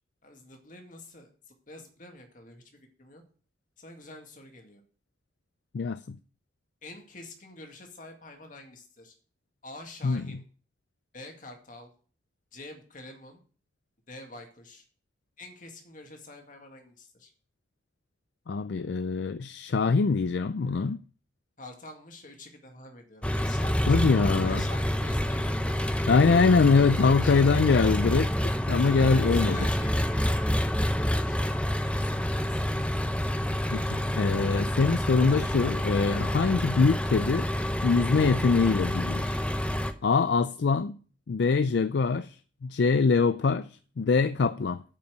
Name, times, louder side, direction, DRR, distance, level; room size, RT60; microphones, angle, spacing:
voice 1, 0.2-3.2 3.8-4.8 6.8-9.1 9.6-10.4 11.1-11.9 12.5-13.4 14.1-14.8 15.4-17.3 21.6-25.9 26.9-27.9 28.8-32.6, left 2 dB, 45° left, 2.1 m, -47 dB
voice 2, 5.7-6.2 10.0-10.2 18.5-21.0 23.9-24.6 26.1-28.3 28.7-29.6 33.7-37.5 37.8-39.4 40.0-41.0 41.3-44.8, left 4 dB, 65° left, 0.4 m, -24 dB
Engine, 23.2-39.9, equal, 5° left, 0.6 m, -28 dB
8.5 x 5.7 x 8.0 m
head